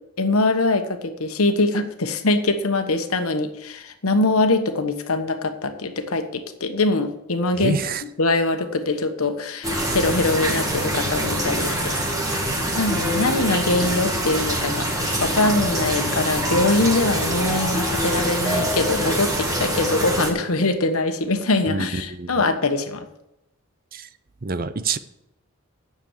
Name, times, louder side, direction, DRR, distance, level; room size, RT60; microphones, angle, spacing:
voice 1, 0.2-7.8 8.2-11.9 12.8-23.1, left 2 dB, 80° left, 7 dB, 1.2 m, -23 dB
voice 2, 7.6-8.0 21.7-22.4 23.9-24.1 24.4-25.0, right 4 dB, 40° right, 13 dB, 0.6 m, -27 dB
sound 1, 9.6-20.3, right 1 dB, 15° right, 2.0 m, -24 dB
10.0 x 7.1 x 7.3 m, 0.88 s
head